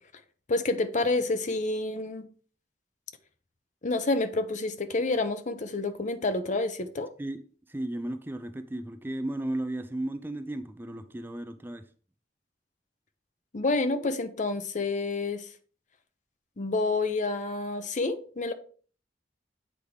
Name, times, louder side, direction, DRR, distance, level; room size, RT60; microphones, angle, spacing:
voice 1, 0.5-2.2 3.8-7.1 13.5-15.5 16.6-18.5, left 3 dB, 45° left, 0.7 m, -28 dB
voice 2, 7.7-11.8, right 1 dB, 10° right, 0.4 m, -34 dB
8.1 x 3.6 x 4.7 m
head